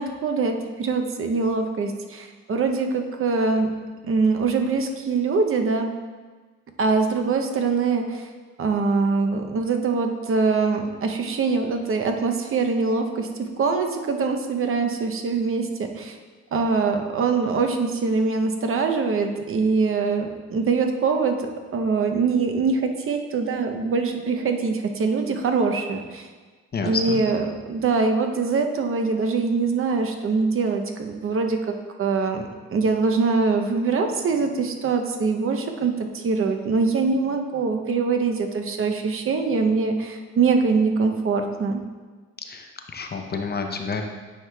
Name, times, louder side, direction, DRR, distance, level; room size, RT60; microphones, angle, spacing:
voice 1, 0.0-3.7 4.0-5.9 6.8-8.3 8.6-13.3 13.6-16.2 16.5-26.3 26.8-41.8, right 4 dB, 45° right, 4 dB, 0.7 m, -23 dB
voice 2, 26.7-27.2 42.4-44.0, left 4 dB, 35° left, 4 dB, 0.6 m, -29 dB
9.2 x 4.7 x 2.3 m, 1.4 s
cardioid pair, 90°, 30 cm